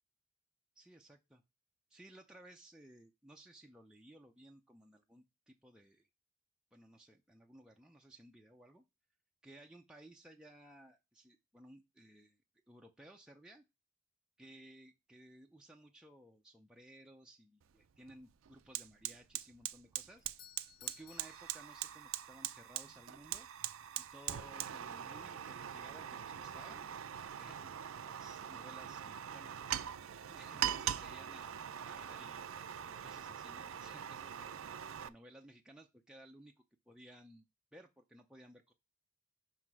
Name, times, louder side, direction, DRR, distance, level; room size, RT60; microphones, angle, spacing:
voice 1, 0.8-1.4 1.9-6.1 6.7-8.8 9.4-12.4 12.7-13.6 14.4-20.3 20.8-23.5 24.0-26.9 27.4-29.6 30.3-34.5 35.0-36.5 36.9-37.5 37.7-38.7, right 1 dB, 5° right, 1 dB, 0.5 m, -58 dB
Fire, 17.6-17.7 18.1-35.1, right 10 dB, 90° right, 0.5 m, -42 dB
Doorbell, 20.2-22.3, left 10 dB, 45° left, 0.6 m, -60 dB
5.9 x 5.3 x 4.7 m, 0.25 s
head